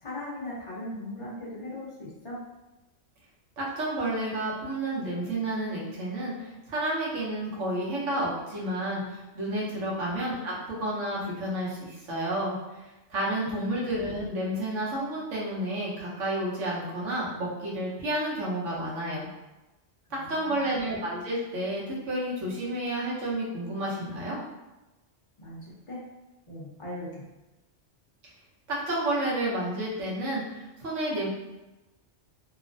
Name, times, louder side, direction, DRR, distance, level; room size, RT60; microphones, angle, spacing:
voice 1, 0.0-2.4 9.9-10.2 13.6-13.9 20.1-20.9 25.4-26.0 26.5-27.2, left 1 dB, 30° left, -6 dB, 0.7 m, -39 dB
voice 2, 3.6-12.6 13.1-19.3 20.3-24.4 28.7-31.3, right 1 dB, 90° right, -6 dB, 1.2 m, -30 dB
3.0 x 2.0 x 2.6 m, 1.0 s
omnidirectional pair, 1.2 m